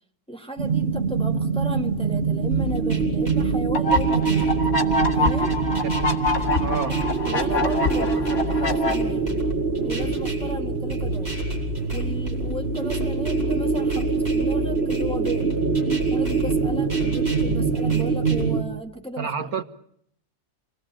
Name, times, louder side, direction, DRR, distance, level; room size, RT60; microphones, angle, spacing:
voice 1, 0.3-4.5 5.2-5.6 6.8-7.0 7.2-9.4 9.8-11.3 11.9-15.5 16.1-19.3, right 1 dB, 5° left, 3 dB, 1.8 m, -35 dB
sound 1, 0.6-18.6, right 5 dB, 40° right, 1.5 m, -24 dB
sound 2, 2.5-18.5, left 4 dB, 25° right, 5.7 m, -33 dB
sound 3, 3.7-8.9, left 2 dB, 60° left, 2.6 m, -25 dB
voice 2, 5.8-6.2 6.6-6.9 19.2-19.6, right 6 dB, 65° right, 7 dB, 1.7 m, -29 dB
27.5 x 19.0 x 8.9 m, 0.72 s
omnidirectional pair, 1.7 m